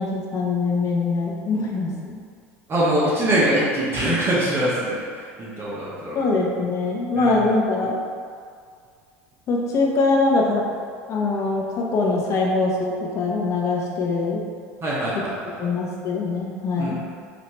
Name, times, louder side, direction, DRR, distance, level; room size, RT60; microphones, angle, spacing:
voice 1, 0.0-2.2 6.1-8.0 9.5-10.6 11.1-14.4 15.6-17.0, left 3 dB, 45° left, -2 dB, 1.0 m, -23 dB
voice 2, 2.7-6.2 7.2-7.4 14.8-15.6 16.8-16.9, right 1 dB, 35° right, -7 dB, 1.2 m, -23 dB
5.6 x 2.9 x 3.3 m, 2.1 s
hypercardioid pair, 75°, 7 cm